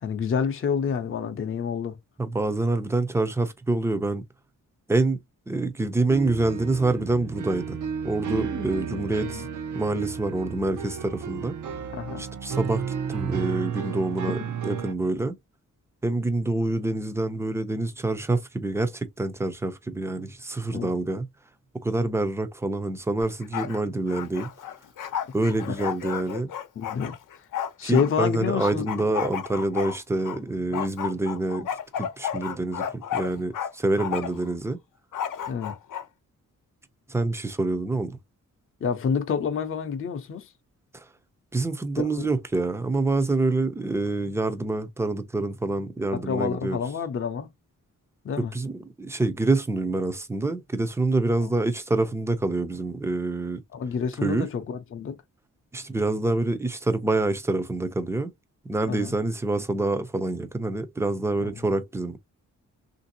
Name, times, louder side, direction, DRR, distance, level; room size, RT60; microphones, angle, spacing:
voice 1, 0.0-2.0 9.2-9.4 11.9-12.3 20.7-20.9 25.7-25.8 26.8-27.5 27.8-29.0 30.7-30.8 35.5-35.8 38.8-40.5 42.0-42.3 46.1-47.5 48.2-48.5 51.4-51.5 53.7-55.2 58.9-59.1 61.4-61.5, left 6 dB, 40° left, 0.6 m, -28 dB
voice 2, 2.2-4.2 4.9-5.2 5.5-7.8 8.0-9.4 9.7-11.6 12.2-12.8 13.1-15.4 16.0-21.3 21.8-24.5 25.3-26.5 27.8-31.7 32.0-34.8 37.1-38.2 40.9-41.1 41.5-46.8 48.5-53.6 54.2-54.5 55.7-58.3 58.6-62.2, right 2 dB, 10° right, 0.5 m, -26 dB
sound 1, 6.1-14.9, right 7 dB, 75° right, 0.7 m, -33 dB
Bark, 23.2-23.8 24.1-28.1 28.6-30.4 30.7-33.7 34.0-34.5 35.1-36.0, left 9 dB, 80° left, 0.7 m, -32 dB
3.3 x 2.6 x 2.7 m
wide cardioid pair, 150°, 31 cm